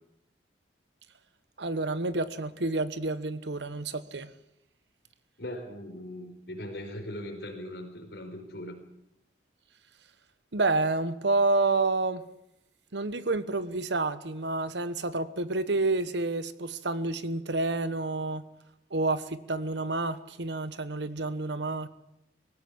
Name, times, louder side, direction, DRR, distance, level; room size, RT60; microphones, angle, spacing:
voice 1, 1.6-4.3 10.5-12.2 12.9-18.5 18.9-21.9, right 2 dB, 75° right, 1.2 m, -29 dB
voice 2, 5.4-8.8, left 1 dB, 65° left, 4.4 m, -39 dB
19.5 x 16.5 x 8.6 m
head